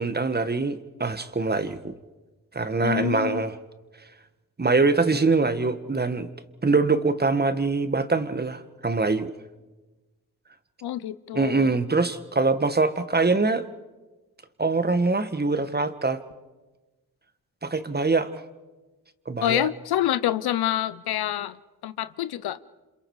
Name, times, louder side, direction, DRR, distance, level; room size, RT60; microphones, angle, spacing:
voice 1, 0.0-1.9 2.5-3.6 4.6-6.3 6.6-9.3 11.3-13.7 14.6-16.2 17.6-18.3 19.3-19.7, right 3 dB, 25° right, 11 dB, 1.6 m, -23 dB
voice 2, 2.8-3.4 10.8-11.7 19.4-21.6 21.8-22.6, left 12 dB, 90° left, 15 dB, 0.8 m, -27 dB
28.5 x 27.0 x 4.9 m, 1.2 s
cardioid pair, 65°, 37 cm